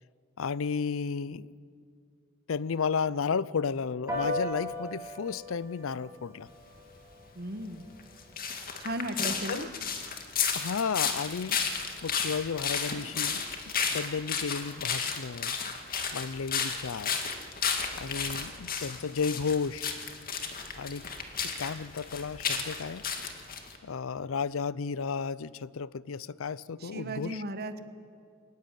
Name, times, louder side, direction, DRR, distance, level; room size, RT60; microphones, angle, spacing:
voice 1, 0.4-1.5 2.5-6.5 9.5-9.7 10.5-13.4 13.9-15.5 16.1-17.2 17.9-20.0 20.7-21.0 21.4-23.0 23.8-27.4, left 5 dB, 70° left, 0.5 m, -33 dB
Piano, 4.1-13.8, left 1 dB, 15° right, 5.1 m, -41 dB
voice 2, 7.3-7.8 8.8-9.7 26.8-27.8, right 1 dB, 50° right, 1.5 m, -36 dB
sound 1, 8.0-23.8, left 6 dB, 45° left, 2.1 m, -33 dB
22.0 x 19.0 x 9.3 m
head